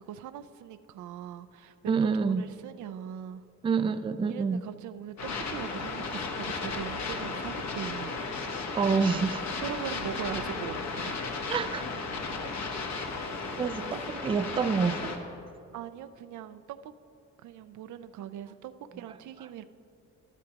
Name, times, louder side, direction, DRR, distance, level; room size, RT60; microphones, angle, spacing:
voice 1, 0.0-3.4 4.3-8.1 9.6-11.5 12.4-12.5 15.7-16.9 17.4-19.6, right 10 dB, 75° right, 12 dB, 0.5 m, -41 dB
voice 2, 1.9-2.4 3.6-4.6 8.7-9.6 11.5-11.8 13.6-15.1, right 5 dB, 20° right, 11 dB, 0.3 m, -27 dB
sound 1, 5.2-15.2, left 4 dB, 65° left, 1.2 m, -35 dB
12.5 x 12.5 x 2.9 m, 2.6 s
cardioid pair, 90°, 30 cm